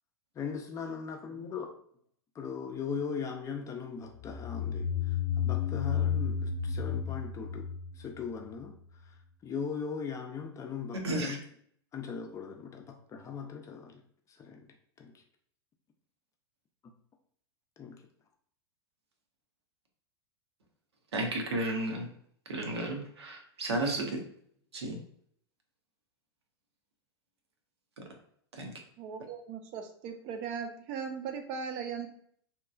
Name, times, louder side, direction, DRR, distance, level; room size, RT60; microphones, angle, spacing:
voice 1, 0.4-1.7 2.4-7.6 8.0-8.7 9.4-11.4 11.9-14.0 14.3-14.6 15.0-15.1 17.8-18.0, left 6 dB, 25° left, 3 dB, 0.4 m, -39 dB
sound 1, 4.1-8.7, left 8 dB, 90° left, 0.5 m, -32 dB
voice 2, 10.9-11.4 21.1-22.1 22.5-24.2 24.7-25.0 28.0-28.1 28.6-28.7, right 1 dB, 85° right, 2 dB, 0.7 m, -33 dB
voice 3, 29.0-32.1, right 6 dB, 45° right, 5 dB, 0.5 m, -38 dB
2.9 x 2.2 x 2.4 m, 0.63 s
hypercardioid pair, 100°, 13 cm